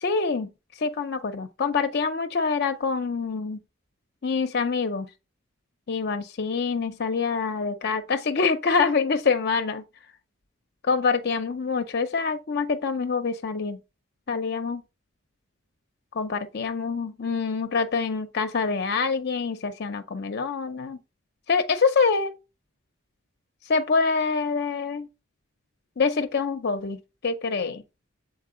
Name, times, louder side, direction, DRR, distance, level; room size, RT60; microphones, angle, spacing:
voice 1, 0.0-3.6 4.2-5.1 5.9-9.8 10.8-13.8 14.3-14.8 16.1-21.0 21.5-22.3 23.6-25.1 26.0-27.8, left 4 dB, 50° left, 0.5 m, -26 dB
7.5 x 4.1 x 3.7 m
head